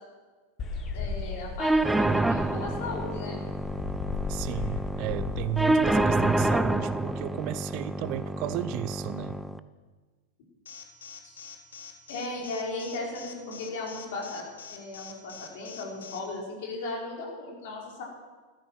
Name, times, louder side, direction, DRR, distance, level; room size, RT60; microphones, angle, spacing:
sound 1, 0.6-6.7, left 4 dB, 30° left, 2.0 m, -36 dB
voice 1, 0.9-3.4 11.2-11.5 12.1-14.4 14.7-18.0, left 2 dB, 55° left, -1 dB, 4.8 m, -36 dB
sound 2, 1.6-9.6, right 2 dB, 5° right, 0.6 m, -28 dB
voice 2, 4.3-9.4, right 13 dB, 45° right, 16 dB, 0.6 m, -34 dB
Alarm, 10.7-16.2, left 7 dB, 70° left, 1.8 m, -44 dB
14.5 x 13.0 x 6.2 m, 1.4 s
figure-of-eight pair, 90°, 0 cm